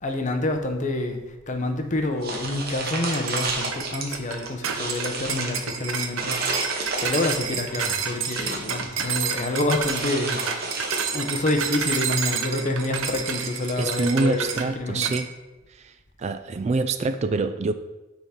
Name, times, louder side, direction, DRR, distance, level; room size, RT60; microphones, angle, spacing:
voice 1, 0.0-1.2 1.5-6.6 7.0-10.5 11.1-14.5 14.8-15.2, left 2 dB, 40° left, 0.8 m, -27 dB
sound 1, 2.2-4.1 4.5-5.6 6.2-7.5 7.9-8.9 9.9-11.4, right 3 dB, 50° right, 1.0 m, -31 dB
sound 2, 3.1-14.7 15.0-15.3, right 7 dB, 80° right, 0.7 m, -29 dB
voice 2, 13.8-15.3 15.7-15.9 16.2-17.7, right 3 dB, 35° right, 0.3 m, -25 dB
9.2 x 3.7 x 4.3 m
head